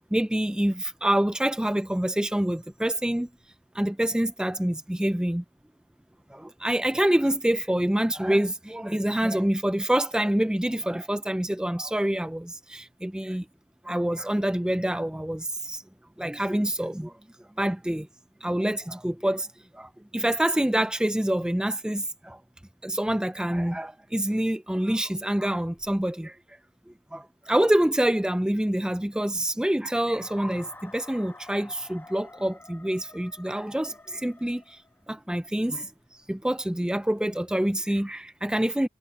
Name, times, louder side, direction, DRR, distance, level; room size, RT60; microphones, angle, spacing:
voice 1, 0.1-3.3 3.7-5.4 6.3-13.5 13.8-15.8 16.2-17.1 17.6-18.1 18.4-19.5 19.7-22.4 22.8-26.4 27.1-34.8 35.1-38.9, right 1 dB, 5° right, 0.3 m, -26 dB
sound 1, 30.2-35.2, left 2 dB, 10° left, 2.0 m, -49 dB
head